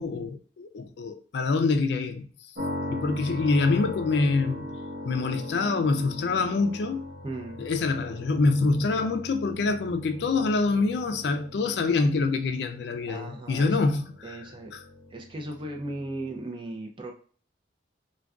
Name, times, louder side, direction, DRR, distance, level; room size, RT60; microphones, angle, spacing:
voice 1, 0.0-2.3 2.9-4.7 5.0-7.1 7.6-14.4, left 3 dB, 60° left, 0.4 m, -25 dB
sound 1, 2.6-16.4, left 1 dB, 65° right, 0.8 m, -40 dB
voice 2, 7.2-7.6 13.1-13.8 14.2-14.7 15.1-17.1, right 1 dB, 25° right, 0.5 m, -37 dB
2.3 x 2.2 x 3.5 m
head